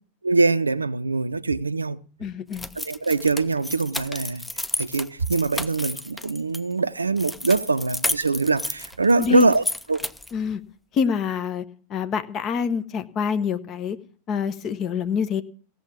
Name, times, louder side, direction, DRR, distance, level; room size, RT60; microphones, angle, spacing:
voice 1, 0.2-2.0 2.8-4.4 4.8-9.6 9.9-10.1, right 3 dB, 80° right, 0.6 m, -23 dB
voice 2, 2.2-2.7 9.2-9.5 10.3-10.6 10.9-11.6 11.9-14.0 14.3-15.4, left 6 dB, 30° left, 1.1 m, -26 dB
sound 1, 2.5-6.6 7.2-10.4, left 1 dB, 5° left, 0.7 m, -32 dB
16.0 x 7.2 x 8.6 m
figure-of-eight pair, 90°, 0 cm